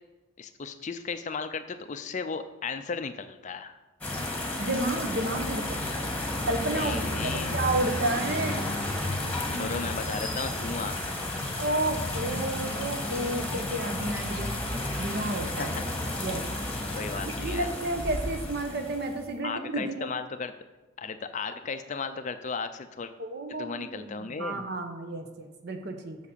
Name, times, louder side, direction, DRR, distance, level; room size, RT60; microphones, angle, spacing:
voice 1, 0.4-3.8 6.4-7.5 8.4-8.6 9.5-11.0 15.6-15.8 16.2-16.3 16.9-17.7 19.4-20.5 21.0-23.1 23.5-24.7, left 5 dB, 35° left, 10 dB, 0.4 m, -35 dB
sound 1, 4.0-19.2, left 1 dB, 5° left, 1.5 m, -32 dB
voice 2, 4.6-6.0 6.4-8.6 9.5-9.8 11.6-14.5 15.0-15.7 16.2-16.4 17.2-20.1 23.2-26.2, right 2 dB, 50° right, 6 dB, 1.0 m, -31 dB
7.3 x 6.7 x 6.8 m, 1.1 s
head